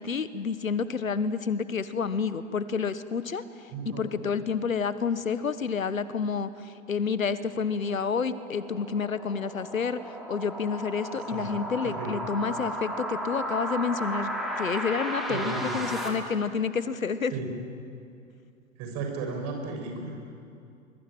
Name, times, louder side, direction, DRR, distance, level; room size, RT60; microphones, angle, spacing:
voice 1, 0.0-14.3 14.6-17.3, left 5 dB, 80° left, 14 dB, 1.3 m, -29 dB
voice 2, 3.7-4.2 11.3-11.5 11.8-12.2 15.3-15.8 17.3-17.5 18.8-20.2, right 4 dB, 40° right, 2 dB, 7.0 m, -34 dB
sound 1, 7.4-16.1, equal, ahead, 4.1 m, -35 dB
24.0 x 22.5 x 9.2 m, 2.5 s
figure-of-eight pair, 95°, 40 cm